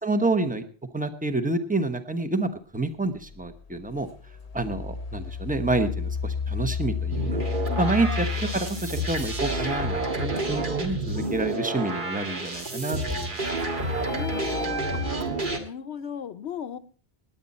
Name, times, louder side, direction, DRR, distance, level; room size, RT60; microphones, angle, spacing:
voice 1, 0.0-0.7 0.9-4.1 4.5-7.4 7.8-13.4, right 2 dB, 10° right, 8 dB, 1.0 m, -28 dB
Engine, 3.3-3.4 4.0-10.0, left 6 dB, 40° left, 0.8 m, -31 dB
sound 1, 7.1-15.6, right 2 dB, 50° right, 1.8 m, -29 dB
voice 2, 14.1-15.2 15.6-16.8, left 8 dB, 75° left, 14 dB, 1.1 m, -36 dB
19.5 x 8.8 x 4.2 m, 0.42 s
omnidirectional pair, 1.1 m